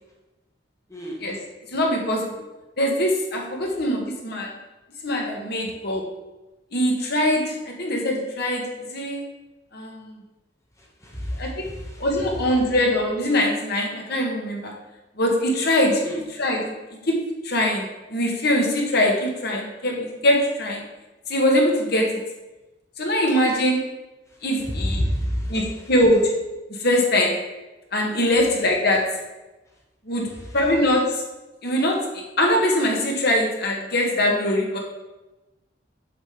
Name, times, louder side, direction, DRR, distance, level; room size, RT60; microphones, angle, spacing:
voice 1, 0.9-1.3 10.8-12.1 16.0-16.2 24.7-25.9 30.3-30.6, equal, 15° left, -2 dB, 1.6 m, -29 dB
voice 2, 1.7-2.3 2.8-4.6 5.0-6.0 6.7-8.6 8.9-9.2 9.7-10.1 11.3-11.7 12.0-14.7 15.2-16.0 16.4-16.7 17.0-17.8 18.1-20.8 21.3-22.2 23.0-23.9 24.4-25.0 25.5-26.3 26.7-27.4 27.9-29.1 30.0-31.2 31.6-34.8, left 1 dB, 60° left, 0 dB, 1.7 m, -22 dB
7.5 x 5.3 x 5.1 m, 1.1 s
head